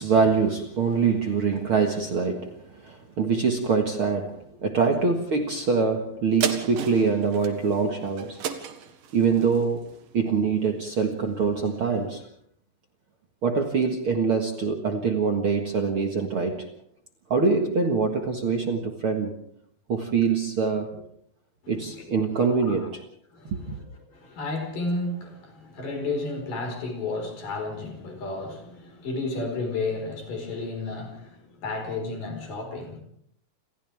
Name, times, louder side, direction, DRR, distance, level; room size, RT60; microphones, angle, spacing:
voice 1, 0.0-8.4 9.1-9.9 10.1-12.2 13.4-16.7 17.3-19.4 19.9-21.0 21.7-23.0 23.5-23.8, right 5 dB, 45° right, 3 dB, 2.0 m, -24 dB
sound 1, 6.4-11.2 11.7-11.8, right 8 dB, 70° right, 3.3 m, -34 dB
voice 2, 21.6-22.0 22.4-22.9 23.3-23.8 24.1-33.0, left 3 dB, 65° left, 4 dB, 6.4 m, -32 dB
28.5 x 28.0 x 3.5 m, 0.67 s
omnidirectional pair, 4.2 m